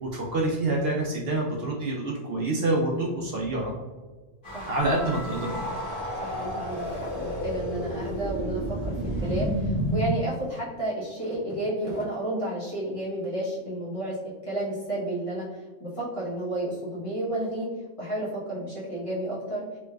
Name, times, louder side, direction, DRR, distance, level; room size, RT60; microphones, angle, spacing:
voice 1, 0.0-3.7 4.6-5.6, right 2 dB, 60° right, -2 dB, 0.8 m, -27 dB
sound 1, 4.4-10.1, equal, 50° left, 1.3 m, -31 dB
sound 2, 4.8-7.5, equal, 85° left, 1.6 m, -43 dB
voice 2, 6.2-8.9 9.2-17.7 18.0-19.6, right 1 dB, 30° left, -8 dB, 1.0 m, -31 dB
3.2 x 3.1 x 2.3 m, 1.3 s
omnidirectional pair, 1.2 m